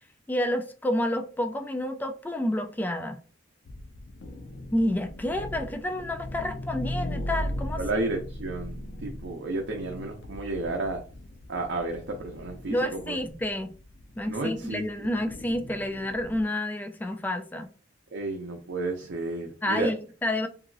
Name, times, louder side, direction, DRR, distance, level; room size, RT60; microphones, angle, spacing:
voice 1, 0.3-3.2 4.7-7.8 12.7-13.7 14.2-17.7 19.6-20.5, left 1 dB, 10° left, 0.3 m, -29 dB
sound 1, 3.7-16.4, left 1 dB, 80° left, 0.4 m, -38 dB
voice 2, 7.7-11.0 11.5-13.2 14.3-15.1 18.1-19.9, right 2 dB, 75° right, 0.5 m, -32 dB
2.9 x 2.6 x 2.5 m
head